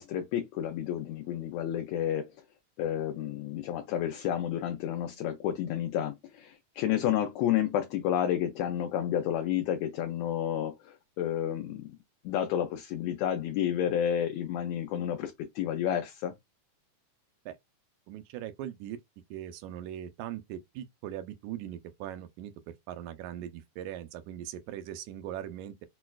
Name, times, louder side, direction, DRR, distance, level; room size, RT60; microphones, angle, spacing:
voice 1, 0.0-2.3 2.8-11.9 12.2-16.3, left 10 dB, 80° left, 1.7 m, -30 dB
voice 2, 18.1-19.0 19.3-25.9, right 11 dB, 85° right, 1.9 m, -40 dB
6.1 x 2.2 x 2.3 m
omnidirectional pair, 3.4 m